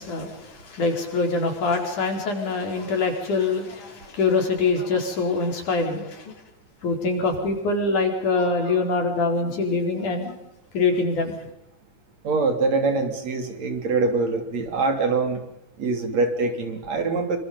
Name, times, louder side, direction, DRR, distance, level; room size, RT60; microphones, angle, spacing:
voice 1, 0.0-6.3 6.8-10.4 10.7-11.4, left 3 dB, 85° left, 3 dB, 5.8 m, -24 dB
voice 2, 12.2-15.4 15.8-17.4, right 3 dB, 60° right, 6 dB, 4.4 m, -24 dB
26.5 x 25.5 x 5.4 m, 0.81 s
omnidirectional pair, 3.4 m